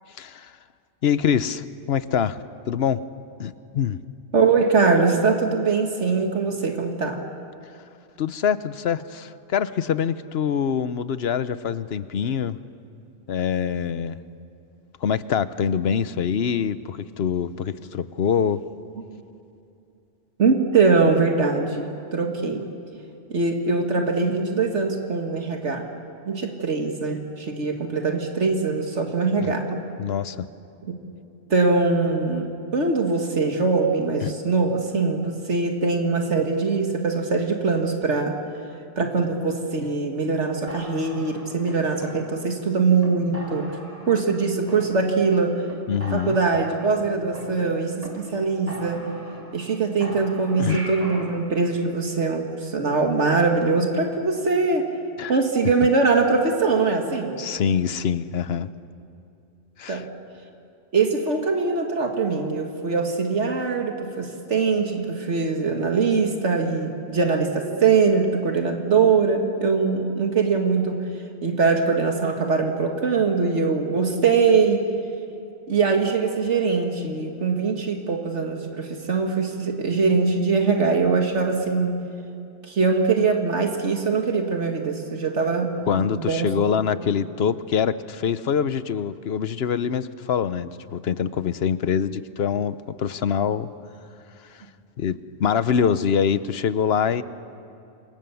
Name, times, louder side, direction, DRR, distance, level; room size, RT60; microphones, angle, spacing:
voice 1, 0.2-0.5 1.0-3.0 3.4-4.0 8.2-12.6 13.3-14.2 15.0-18.6 29.4-29.5 30.0-30.5 34.2-34.3 45.9-46.4 50.6-50.8 55.2-55.3 57.4-58.7 59.8-60.0 85.9-93.7 94.5-94.6 95.0-97.2, left 7 dB, 65° left, 14 dB, 1.0 m, -24 dB
voice 2, 4.3-7.2 19.1-19.2 20.4-22.6 23.3-25.8 26.3-29.8 31.5-38.4 39.0-43.7 44.1-45.6 46.1-49.2 49.5-54.9 55.3-57.4 59.9-60.1 60.9-71.0 71.4-74.8 75.7-82.0 82.6-86.5 87.0-87.1, right 4 dB, 75° right, 3 dB, 2.0 m, -22 dB
sound 1, 40.7-42.6 43.0-43.1 43.3-44.4 44.7-45.4 45.7-45.8 46.0-48.1 48.3-48.4 48.7-49.7 50.0-51.3, equal, 35° right, 3.9 m, -40 dB
28.0 x 24.0 x 7.0 m, 2.6 s
omnidirectional pair, 1.2 m